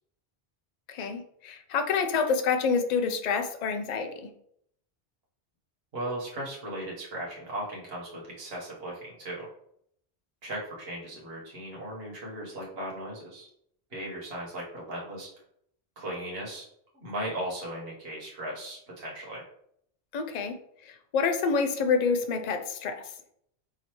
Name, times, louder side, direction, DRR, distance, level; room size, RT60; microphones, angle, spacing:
voice 1, 0.9-4.3 20.1-20.5 21.1-23.0, left 5 dB, 55° left, 7 dB, 0.5 m, -27 dB
voice 2, 5.9-9.5 10.4-13.5 13.9-15.3 16.0-16.7 16.9-19.4, right 1 dB, 65° right, -4 dB, 1.4 m, -37 dB
4.9 x 2.7 x 3.0 m, 0.70 s
omnidirectional pair, 1.1 m